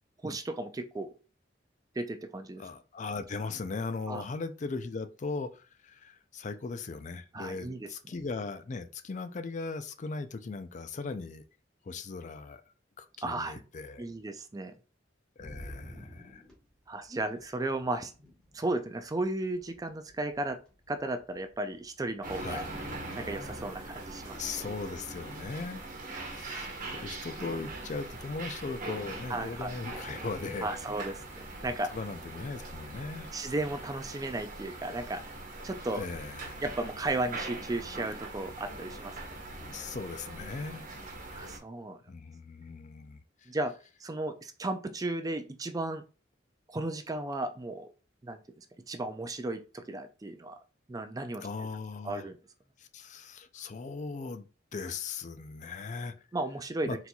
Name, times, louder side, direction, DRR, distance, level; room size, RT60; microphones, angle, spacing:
voice 1, 0.2-1.1 2.0-2.6 4.1-4.2 7.3-7.9 13.2-13.6 14.0-14.7 16.9-18.1 18.5-20.6 20.9-22.7 23.2-24.4 29.3-29.7 30.6-31.9 33.3-35.2 35.6-36.0 36.6-39.1 41.3-42.0 43.5-43.7 44.0-46.0 46.7-47.9 48.2-50.6 50.9-51.5 52.0-52.4 56.3-57.1, right 2 dB, 20° right, 0.4 m, -34 dB
voice 2, 2.6-11.4 11.8-12.6 13.0-14.1 15.4-16.4 22.4-22.7 24.3-25.8 26.3-30.7 31.9-33.3 35.9-36.6 39.5-40.9 42.1-43.5 51.4-52.3 52.8-56.1 56.8-57.0, left 4 dB, 40° left, 0.4 m, -38 dB
sound 1, 15.4-33.0, equal, 5° left, 2.1 m, -56 dB
sound 2, 22.2-41.6, right 2 dB, 45° right, 1.1 m, -42 dB
4.3 x 4.0 x 2.3 m
head